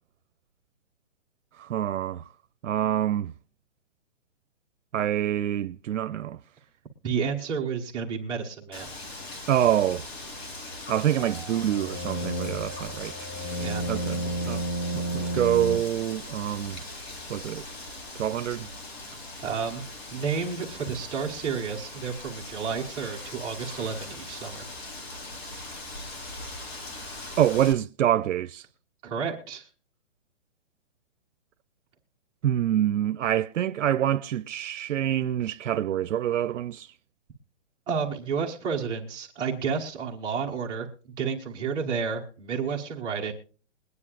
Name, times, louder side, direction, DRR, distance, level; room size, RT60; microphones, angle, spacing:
voice 1, 1.6-2.2 2.6-3.3 4.9-6.4 9.5-10.0 10.9-14.6 14.9-16.8 17.3-17.6 18.1-18.7 27.4-28.6 32.4-36.9, right 11 dB, 85° right, 0.6 m, -26 dB
voice 2, 7.0-8.9 13.6-13.8 14.3-14.5 19.4-24.6 29.0-29.7 37.9-40.9 41.2-43.3, right 6 dB, 10° right, 1.1 m, -31 dB
Wind, 8.7-27.7, left 2 dB, 60° left, 3.7 m, -40 dB
sound 1, 11.2-15.8, right 1 dB, 30° left, 1.0 m, -32 dB
22.0 x 9.7 x 2.4 m
hypercardioid pair, 160°, 36 cm